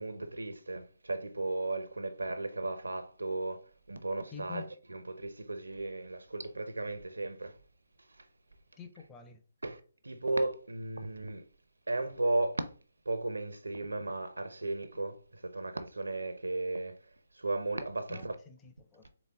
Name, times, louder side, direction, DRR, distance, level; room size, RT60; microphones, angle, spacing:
voice 1, 0.0-7.6 8.2-8.3 9.6-11.4 11.9-12.7 13.1-17.0 17.3-18.3, right 2 dB, 70° right, 0.6 m, -35 dB
voice 2, 4.3-4.7 8.8-9.4 18.1-19.1, left 7 dB, 15° left, 0.6 m, -47 dB
4.1 x 3.5 x 3.5 m
figure-of-eight pair, 135°, 0 cm